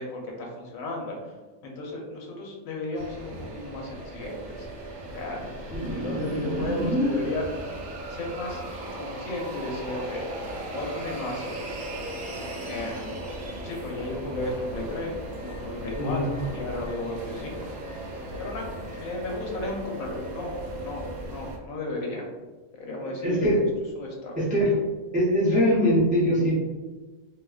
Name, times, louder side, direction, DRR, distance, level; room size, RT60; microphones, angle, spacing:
voice 1, 0.0-1.3 1.6-4.7 5.1-8.6 9.0-10.2 10.7-11.6 12.7-13.2 13.6-15.1 15.4-17.6 18.4-18.7 19.0-22.2 22.8-23.5 24.0-24.3, left 2 dB, 70° left, -1 dB, 1.1 m, -34 dB
sound 1, 3.0-21.6, right 1 dB, 65° right, 0.8 m, -37 dB
voice 2, 5.7-7.1 16.0-16.2 23.2-23.6 24.4-24.7 25.1-26.5, equal, 10° right, -7 dB, 0.3 m, -23 dB
3.6 x 2.7 x 2.3 m, 1.3 s
omnidirectional pair, 1.6 m